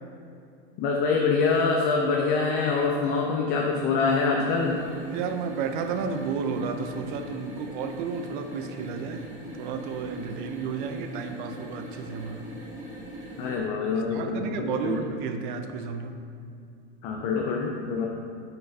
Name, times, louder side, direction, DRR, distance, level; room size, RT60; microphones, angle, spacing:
voice 1, 0.8-4.8 13.4-15.0 17.0-18.1, left 4 dB, 30° left, 0 dB, 0.4 m, -25 dB
sound 1, 4.4-13.7, right 1 dB, 20° right, 1.2 m, -41 dB
voice 2, 5.1-9.3 9.5-12.5 13.9-16.2, right 5 dB, 45° right, 7 dB, 0.6 m, -32 dB
8.5 x 5.9 x 2.7 m, 2.5 s
supercardioid pair, 155°, 34 cm